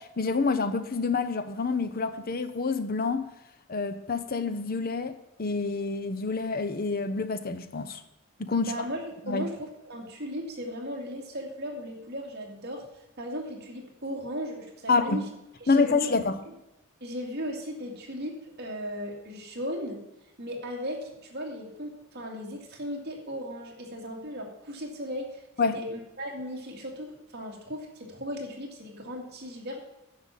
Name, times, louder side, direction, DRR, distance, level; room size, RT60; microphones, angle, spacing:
voice 1, 0.0-3.3 3.7-8.0 8.4-8.7 9.3-9.5 14.9-15.2 15.7-16.4 25.6-25.8, left 4 dB, 45° left, 11 dB, 0.8 m, -27 dB
voice 2, 8.6-12.8 13.2-15.2 15.6-16.1 17.0-20.0 20.4-29.8, equal, 55° right, 0 dB, 2.4 m, -37 dB
10.5 x 5.8 x 7.4 m, 0.93 s
head